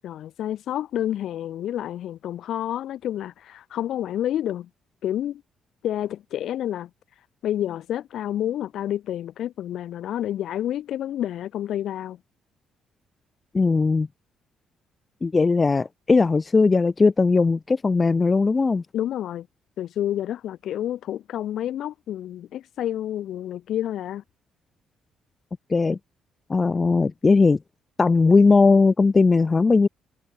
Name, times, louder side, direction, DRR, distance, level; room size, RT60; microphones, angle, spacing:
voice 1, 0.0-4.7 5.0-5.4 5.8-6.9 7.4-12.2 18.9-19.5 19.8-24.2, left 11 dB, 65° left, 7.6 m, -29 dB
voice 2, 13.5-14.1 15.2-18.8 25.7-26.0 26.5-27.6 28.0-29.9, left 4 dB, 25° left, 0.8 m, -18 dB
cardioid pair, 135°, 0 cm